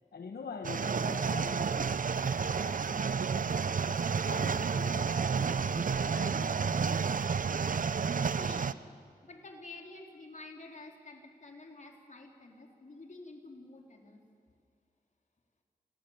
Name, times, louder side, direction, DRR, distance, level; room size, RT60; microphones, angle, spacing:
voice 1, 0.1-7.1, left 5 dB, 75° left, 5 dB, 1.2 m, -46 dB
sound 1, 0.6-8.7, right 5 dB, 55° right, 0.6 m, -30 dB
voice 2, 8.4-8.8 9.2-14.2, left 2 dB, 50° left, 2 dB, 3.7 m, -49 dB
27.5 x 18.0 x 7.3 m, 2.3 s
cardioid pair, 60°, 16 cm